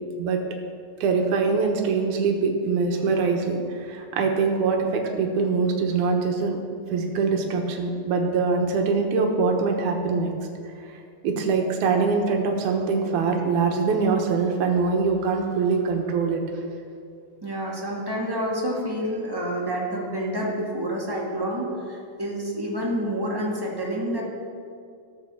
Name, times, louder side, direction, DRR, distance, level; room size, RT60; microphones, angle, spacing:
voice 1, 1.0-3.6 3.9-6.6 6.9-10.3 11.2-16.4, right 4 dB, 75° right, 2 dB, 2.6 m, -23 dB
voice 2, 17.4-24.2, equal, 10° right, -4 dB, 1.4 m, -28 dB
14.0 x 5.8 x 6.9 m, 2.3 s
omnidirectional pair, 3.5 m